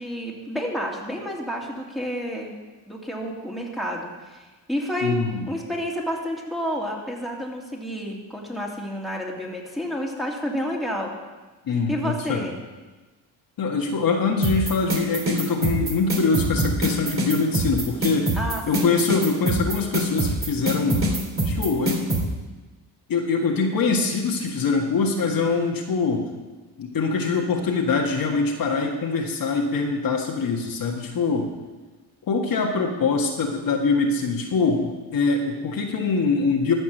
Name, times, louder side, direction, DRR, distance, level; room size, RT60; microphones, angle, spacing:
voice 1, 0.0-2.5 2.8-11.1 11.9-12.5 18.3-18.9, equal, ahead, -2 dB, 2.5 m, -30 dB
voice 2, 5.0-5.5 11.6-12.4 13.6-18.3 18.7-21.1 21.4-22.0 23.1-26.3 26.8-31.5 32.3-36.7, left 4 dB, 55° left, 1 dB, 1.7 m, -23 dB
sound 1, 14.4-22.2, right 1 dB, 30° right, 2.9 m, -24 dB
14.0 x 5.4 x 6.6 m, 1.2 s
cardioid pair, 75°, 40 cm